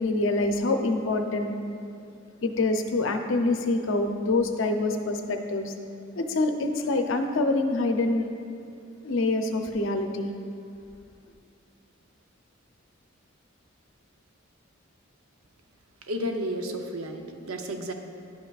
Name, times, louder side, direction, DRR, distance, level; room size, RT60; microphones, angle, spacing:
voice 1, 0.0-1.5 2.4-5.7 6.2-8.3 9.0-10.3, left 2 dB, 65° left, 5 dB, 0.5 m, -26 dB
voice 2, 16.1-17.9, equal, 90° right, 4 dB, 0.7 m, -32 dB
11.0 x 5.7 x 2.4 m, 2.5 s
head